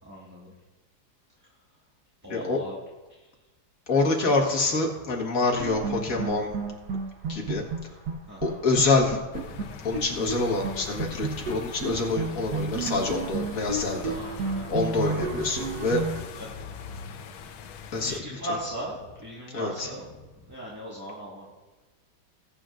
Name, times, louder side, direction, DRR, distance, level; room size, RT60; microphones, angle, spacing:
voice 1, 0.0-0.5 2.2-2.8 3.1-3.2 4.2-4.5 8.3-8.6 14.1-14.6 15.0-15.3 16.3-16.5 18.0-20.1 20.5-21.5, equal, 10° right, -7 dB, 1.5 m, -38 dB
voice 2, 3.9-6.5 7.3-8.0 8.4-9.2 9.8-14.1 14.4-16.0 17.9-18.4 19.5-19.9, left 3 dB, 45° left, 0 dB, 1.9 m, -26 dB
sound 1, 5.6-8.1 8.4-8.5 8.8-10.4 10.6-10.7 11.0-16.2, right 4 dB, 55° right, 1.4 m, -32 dB
sound 2, 9.3-18.2, left 6 dB, 85° left, 1.6 m, -41 dB
20.5 x 8.9 x 2.5 m, 1.2 s
omnidirectional pair, 2.3 m